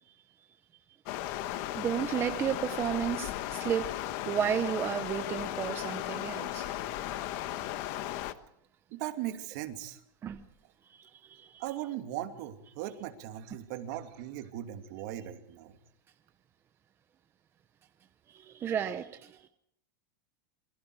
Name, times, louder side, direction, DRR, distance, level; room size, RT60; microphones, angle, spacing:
Stream, 1.1-8.3, left 13 dB, 50° left, 1.3 m, -36 dB
voice 1, 1.7-3.9 4.3-6.7 10.2-10.4 10.9-11.6 18.3-19.5, right 9 dB, 20° right, 9 dB, 0.8 m, -33 dB
voice 2, 8.9-10.0 11.6-15.7, right 12 dB, 55° right, 6 dB, 2.6 m, -38 dB
27.0 x 23.5 x 4.9 m, 0.72 s
supercardioid pair, 160°, 12 cm